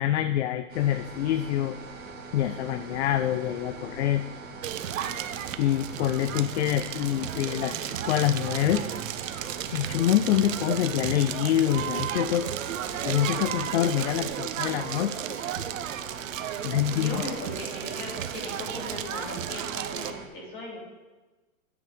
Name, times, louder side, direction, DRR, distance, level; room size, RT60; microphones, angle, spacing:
voice 1, 0.0-1.8 2.3-4.2 5.6-12.5 13.0-15.1 15.4-15.6 16.6-17.2, left 11 dB, 50° left, 12 dB, 0.5 m, -26 dB
sound 1, 0.7-20.3, right 4 dB, 20° right, 2.1 m, -42 dB
Crackle, 4.6-20.1, right 11 dB, 65° right, 0.8 m, -34 dB
sound 2, 5.1-9.8, right 6 dB, 85° right, 1.8 m, -51 dB
voice 2, 16.9-20.8, left 1 dB, 25° left, -3 dB, 3.3 m, -37 dB
11.0 x 7.9 x 5.1 m, 1.2 s
hypercardioid pair, 150°, 43 cm